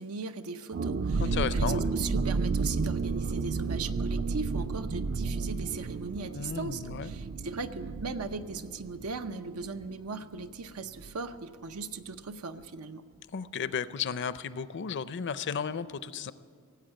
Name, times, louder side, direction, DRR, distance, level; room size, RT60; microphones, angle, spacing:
voice 1, 0.0-13.0, right 4 dB, 90° right, 9 dB, 0.8 m, -38 dB
sound 1, 0.7-10.1 10.4-10.5 10.8-11.1, right 4 dB, 50° right, 0.4 m, -32 dB
voice 2, 1.2-1.9 6.3-7.1 13.3-16.3, left 6 dB, 55° left, 15 dB, 0.5 m, -34 dB
18.0 x 8.1 x 8.9 m, 2.2 s
head